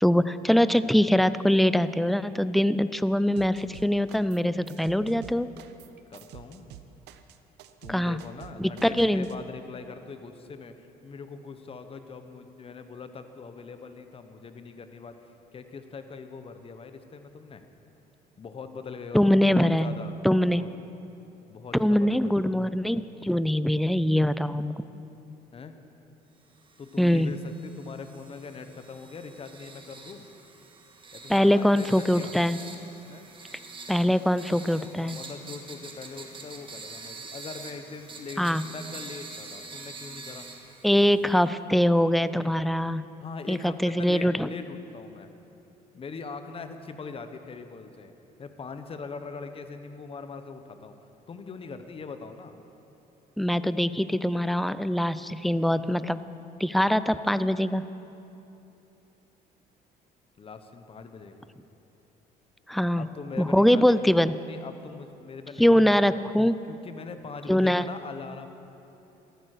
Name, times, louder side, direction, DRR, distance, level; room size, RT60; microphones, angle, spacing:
voice 1, 0.0-5.5 7.9-8.2 8.6-9.3 19.1-19.9 20.2-20.6 21.8-24.7 27.0-27.3 31.3-32.6 33.9-35.2 38.4-38.6 40.8-43.0 43.5-44.5 53.4-56.2 56.6-57.8 62.7-63.1 63.4-64.4 65.6-66.6 67.5-67.9, equal, ahead, 14 dB, 0.4 m, -23 dB
sound 1, 3.3-4.4 4.7-9.3, right 11 dB, 80° right, 0.8 m, -48 dB
voice 2, 6.1-6.7 7.8-15.2 15.5-17.6 18.4-20.2 20.5-20.7 21.5-22.6 25.5-25.8 26.8-30.2 31.1-32.3 33.1-33.3 34.8-40.5 43.2-45.3 45.9-48.1 48.4-50.9 51.3-52.6 60.4-61.5 63.0-64.0 64.4-66.2 66.7-68.5, left 4 dB, 35° left, 8 dB, 1.1 m, -42 dB
sound 2, 26.6-41.5, right 3 dB, 30° right, 1.7 m, -45 dB
13.5 x 13.0 x 6.7 m, 2.9 s
cardioid pair, 110°, 17 cm